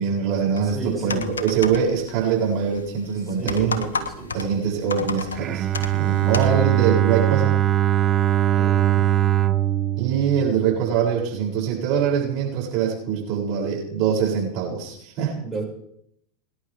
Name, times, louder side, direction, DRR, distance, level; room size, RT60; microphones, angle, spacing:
voice 1, 0.0-3.8 4.3-5.7 5.9-7.5 10.0-15.4, right 7 dB, 50° right, -2 dB, 7.9 m, -23 dB
sound 1, 0.6-6.5, left 4 dB, 85° left, 1.5 m, -33 dB
voice 2, 0.7-1.3 3.4-4.3 8.5-9.0 15.4-15.6, right 4 dB, 15° right, -2 dB, 6.7 m, -32 dB
Bowed string instrument, 5.4-11.3, right 12 dB, 35° right, 0.9 m, -21 dB
24.0 x 11.5 x 3.7 m, 0.72 s
hypercardioid pair, 90°, 0 cm